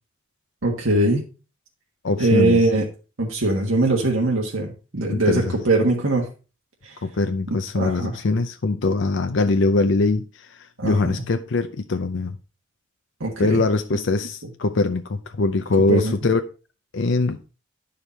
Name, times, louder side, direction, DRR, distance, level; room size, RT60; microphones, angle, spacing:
voice 1, 0.6-1.2 2.2-2.8 3.2-6.3 6.8-6.9 7.7-8.1 10.8-10.9 13.2-13.6 15.9-16.1, right 2 dB, 80° right, 1.6 m, -21 dB
voice 2, 2.0-2.7 5.1-5.6 7.0-12.4 13.4-16.4 16.9-17.4, left 3 dB, 65° left, 0.6 m, -22 dB
11.0 x 5.1 x 4.1 m
head